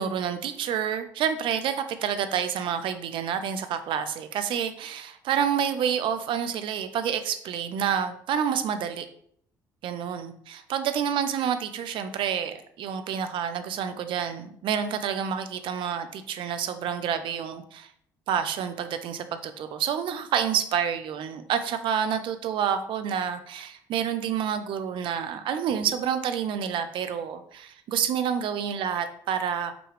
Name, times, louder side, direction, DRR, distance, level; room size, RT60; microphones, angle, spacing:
voice 1, 0.0-9.1 9.8-17.9 18.3-29.7, right 8 dB, 55° right, 10 dB, 0.5 m, -28 dB
5.8 x 2.3 x 3.3 m, 0.65 s
hypercardioid pair, 50°, 10 cm